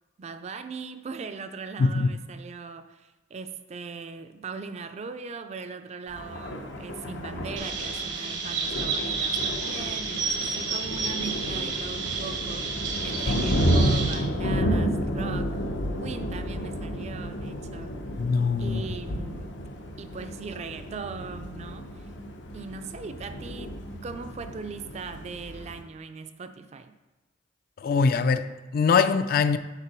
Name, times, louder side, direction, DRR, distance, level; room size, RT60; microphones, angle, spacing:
voice 1, 0.2-15.5 16.0-18.0 18.6-19.6 20.0-22.1 22.5-26.9, right 5 dB, 35° right, 10 dB, 0.3 m, -39 dB
voice 2, 1.8-2.2 18.2-18.8 27.8-29.6, left 5 dB, 55° left, 11 dB, 0.3 m, -23 dB
Thunder, 6.1-25.8, equal, 85° left, 0.8 m, -31 dB
Chirp tweet, 7.6-14.1, right 4 dB, 90° right, 1.3 m, -31 dB
5.8 x 3.7 x 5.9 m, 1.1 s
head